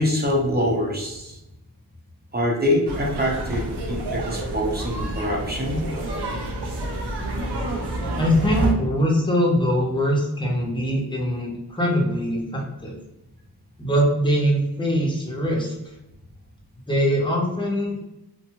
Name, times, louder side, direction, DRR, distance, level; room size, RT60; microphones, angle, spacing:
voice 1, 0.0-1.4 2.3-5.8, left 1 dB, 25° right, -1 dB, 0.7 m, -24 dB
sound 1, 2.9-8.7, right 1 dB, 90° right, 0.6 m, -28 dB
voice 2, 8.2-12.9 13.8-15.7 16.9-18.0, equal, 10° left, -2 dB, 0.8 m, -22 dB
2.6 x 2.2 x 2.9 m, 0.90 s
wide cardioid pair, 65°, 39 cm